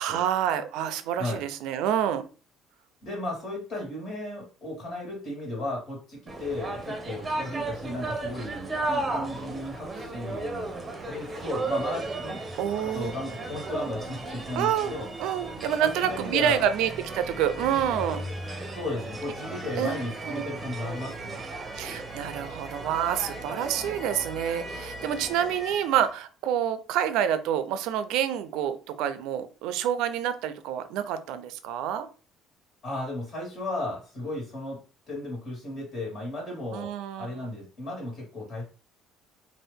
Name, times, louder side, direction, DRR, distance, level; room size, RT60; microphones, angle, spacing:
voice 1, 0.0-2.2 12.6-13.2 14.6-14.9 15.2-18.2 18.6-18.8 19.8-20.0 20.3-20.5 21.7-32.1 36.7-37.4, right 10 dB, 80° right, 11 dB, 0.4 m, -28 dB
voice 2, 3.0-10.8 11.1-12.4 12.9-15.1 15.8-16.7 18.7-21.4 32.8-34.8 35.1-38.6, left 1 dB, 50° left, -2 dB, 1.7 m, -35 dB
sound 1, 6.3-26.1, right 2 dB, 15° right, 0.7 m, -35 dB
2.7 x 2.5 x 3.4 m, 0.36 s
cardioid pair, 135°, 0 cm